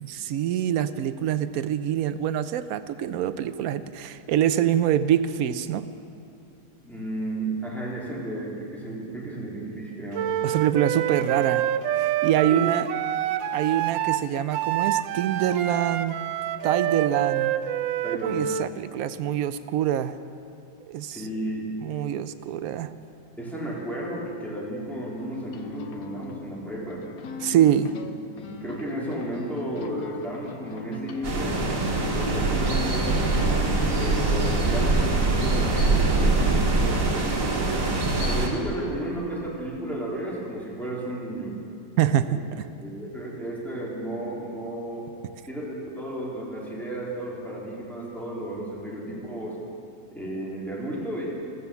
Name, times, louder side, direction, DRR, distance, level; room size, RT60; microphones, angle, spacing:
voice 1, 0.0-5.9 10.4-11.6 12.0-12.9 13.5-16.2 16.6-17.5 18.2-20.1 20.9-21.2 21.8-22.9 27.4-27.9 42.0-42.7, right 10 dB, 70° right, 12 dB, 0.9 m, -25 dB
voice 2, 6.8-10.3 12.5-12.6 18.0-18.4 21.1-21.7 23.4-27.1 28.3-33.5 34.0-37.3 38.2-41.6 42.3-42.4 42.8-45.1 45.5-49.6 50.1-51.3, right 1 dB, ahead, -5 dB, 3.4 m, -33 dB
Wind instrument woodwind instrument, 10.1-18.7, right 12 dB, 90° right, 1.3 m, -27 dB
sound 1, 25.2-35.0, left 5 dB, 60° left, 1.2 m, -40 dB
sound 2, 31.2-38.5, right 2 dB, 45° right, 2.3 m, -23 dB
14.5 x 14.0 x 7.0 m, 2.7 s
omnidirectional pair, 2.0 m